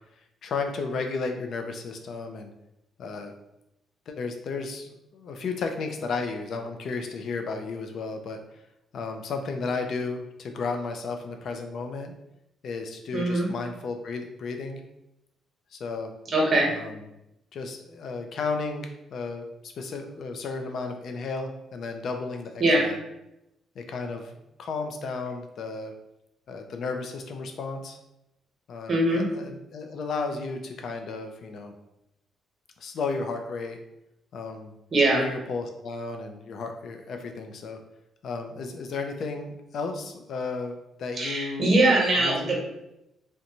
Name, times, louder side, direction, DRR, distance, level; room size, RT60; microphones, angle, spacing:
voice 1, 0.4-2.5 3.0-3.3 4.1-8.4 8.9-12.1 12.6-14.8 15.7-16.1 16.6-17.1 17.5-23.0 23.8-25.9 26.5-28.0 28.7-31.7 32.8-33.8 34.3-34.7 35.1-37.8 38.2-41.7 42.2-42.6, left 4 dB, 65° left, 5 dB, 0.4 m, -33 dB
voice 2, 13.1-13.5 16.3-16.7 22.6-22.9 28.9-29.2 34.9-35.2 41.2-42.6, right 2 dB, 45° right, -2 dB, 0.9 m, -22 dB
2.6 x 2.1 x 2.8 m, 0.86 s
cardioid pair, 90°, 0 cm